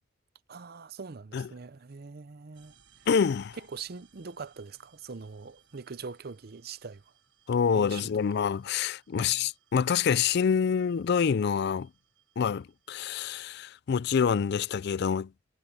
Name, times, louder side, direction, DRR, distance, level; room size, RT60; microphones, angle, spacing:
voice 1, 0.5-2.7 3.7-7.0 7.7-8.0 9.1-9.5, right 5 dB, 55° right, 0.7 m, -42 dB
sound 1, 2.5-13.1, right 7 dB, 85° right, 4.7 m, -66 dB
voice 2, 3.1-3.6 7.5-11.9 12.4-15.3, left 6 dB, 60° left, 0.4 m, -27 dB
head